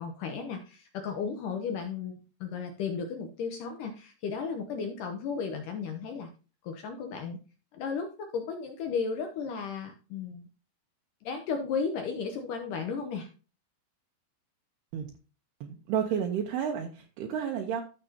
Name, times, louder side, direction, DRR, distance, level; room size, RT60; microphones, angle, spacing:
voice 1, 0.0-6.3 6.6-7.4 7.7-10.5 11.2-13.3, left 5 dB, 85° left, 4 dB, 1.8 m, -34 dB
voice 2, 15.6-17.8, right 8 dB, 75° right, 1 dB, 2.8 m, -31 dB
13.5 x 6.7 x 2.8 m, 0.34 s
omnidirectional pair, 5.1 m